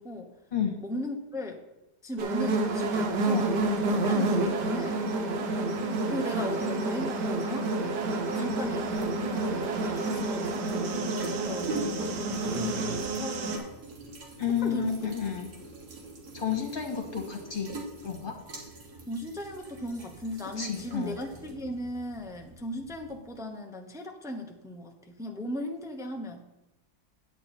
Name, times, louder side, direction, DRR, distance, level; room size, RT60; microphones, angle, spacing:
voice 1, 0.0-0.3 0.8-1.6 2.0-5.3 6.1-7.7 8.2-13.8 14.6-15.1 19.1-26.5, left 1 dB, 5° right, 2 dB, 0.5 m, -37 dB
sound 1, 2.2-13.6, right 2 dB, 90° right, 1.6 m, -29 dB
sound 2, 8.3-23.3, right 3 dB, 50° right, 1.7 m, -44 dB
voice 2, 14.4-15.5 16.3-17.8 18.0-18.3 20.6-21.2, left 7 dB, 35° left, 1 dB, 1.6 m, -31 dB
9.0 x 8.5 x 4.3 m, 0.95 s
omnidirectional pair, 1.8 m